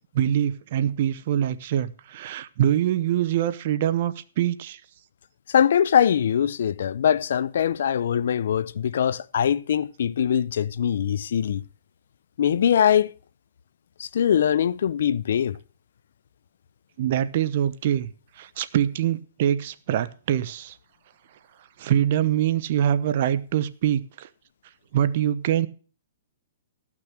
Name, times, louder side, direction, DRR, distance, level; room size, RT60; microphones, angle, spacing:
voice 1, 0.1-4.8 17.0-18.1 18.4-20.7 21.8-24.3 24.9-25.7, right 10 dB, 50° right, 0.8 m, -24 dB
voice 2, 5.5-11.6 12.4-13.1 14.0-15.6, left 9 dB, 65° left, 0.4 m, -22 dB
13.5 x 6.0 x 6.1 m
hypercardioid pair, 145°, 0 cm